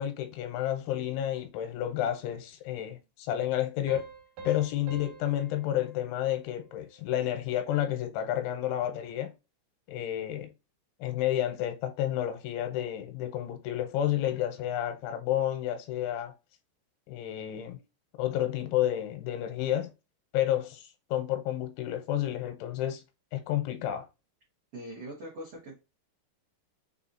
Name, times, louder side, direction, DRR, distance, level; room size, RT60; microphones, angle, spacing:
voice 1, 0.0-4.1 4.5-9.3 9.9-10.5 11.0-16.3 17.1-17.8 18.2-19.9 20.3-23.0 23.3-24.1, left 12 dB, 85° left, 3.1 m, -30 dB
sound 1, 3.9-7.2, right 4 dB, 70° right, 2.5 m, -48 dB
voice 2, 24.7-25.8, right 1 dB, 85° right, 1.3 m, -42 dB
6.9 x 2.7 x 2.7 m
omnidirectional pair, 5.5 m